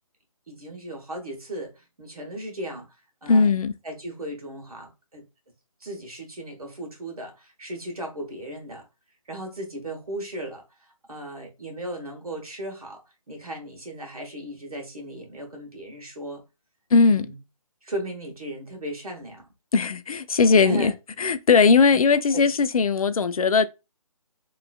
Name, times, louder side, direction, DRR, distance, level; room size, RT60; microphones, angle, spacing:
voice 1, 0.5-2.9 3.2-3.5 3.8-5.2 5.8-8.8 9.3-13.0 13.3-16.4 17.0-17.4 17.8-19.5 20.6-20.9 21.9-22.0 22.3-22.4, right 1 dB, 85° right, 1.3 m, -36 dB
voice 2, 3.3-3.7 16.9-17.3 19.7-20.9 21.2-23.7, left 4 dB, 75° left, 0.4 m, -19 dB
2.9 x 2.5 x 2.3 m
figure-of-eight pair, 155°, 18 cm